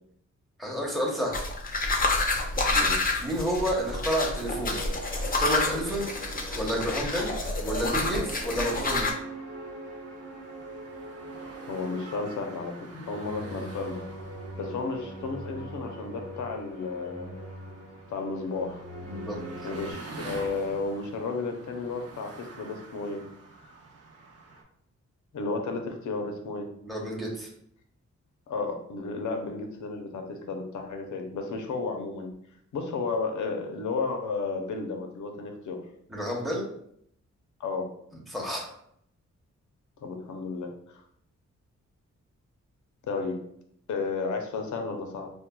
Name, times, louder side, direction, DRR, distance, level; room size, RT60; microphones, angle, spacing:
voice 1, 0.6-1.4 3.2-4.8 5.4-6.1 6.6-7.3 7.6-9.1 19.1-19.4 26.8-27.5 36.1-36.6 38.3-38.7, equal, ahead, -2 dB, 0.8 m, -30 dB
sound 1, 1.3-9.1, left 2 dB, 30° left, 0.5 m, -28 dB
voice 2, 2.7-3.1 11.7-14.0 14.6-17.3 18.1-18.8 19.6-23.2 23.6-23.7 25.3-26.7 28.5-32.3 32.7-35.8 37.6-37.9 40.0-41.0 43.1-43.4 43.9-45.3, left 4 dB, 80° left, 4 dB, 0.6 m, -33 dB
sound 2, 3.2-19.9, right 1 dB, 90° right, 1.0 m, -43 dB
sound 3, 5.1-24.6, right 3 dB, 55° right, 0.6 m, -48 dB
4.4 x 2.2 x 2.2 m, 0.70 s
wide cardioid pair, 105°, 30 cm